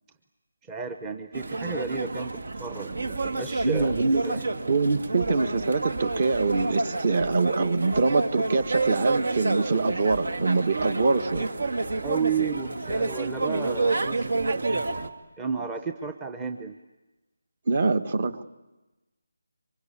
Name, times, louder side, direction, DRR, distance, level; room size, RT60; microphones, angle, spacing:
voice 1, 0.6-3.9 4.2-4.5 12.0-15.0 15.4-16.8, right 5 dB, 10° right, 6 dB, 0.8 m, -33 dB
sound 1, 1.3-15.1, right 3 dB, 65° right, 2.1 m, -29 dB
voice 2, 3.6-4.2 4.7-11.5 17.7-18.4, right 3 dB, 40° right, 12 dB, 1.5 m, -24 dB
26.5 x 24.0 x 8.4 m, 1.1 s
figure-of-eight pair, 170°, 0 cm